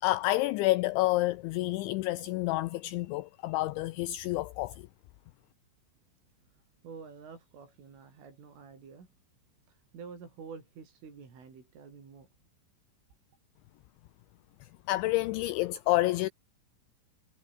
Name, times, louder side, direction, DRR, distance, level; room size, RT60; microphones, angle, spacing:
voice 1, 0.0-4.8 14.6-16.3, left 18 dB, 80° left, 2.8 m, -29 dB
voice 2, 6.5-9.1 9.7-12.3, right 5 dB, 70° right, 8.9 m, -49 dB
omnidirectional pair, 5.9 m